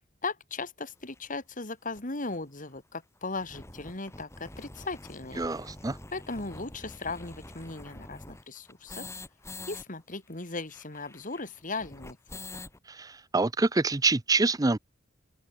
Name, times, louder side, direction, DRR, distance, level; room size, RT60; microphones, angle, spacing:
voice 1, 0.2-5.4 6.1-9.0 9.7-12.4, left 3 dB, 45° left, 2.8 m, -37 dB
sound 1, 1.2-1.3 1.9-2.0 2.3-2.4 2.7-2.8 3.2-9.8 10.1-10.2 10.4-12.8, left 2 dB, 15° left, 2.2 m, -46 dB
voice 2, 5.4-6.0 12.9-14.8, right 3 dB, 20° right, 0.6 m, -26 dB
head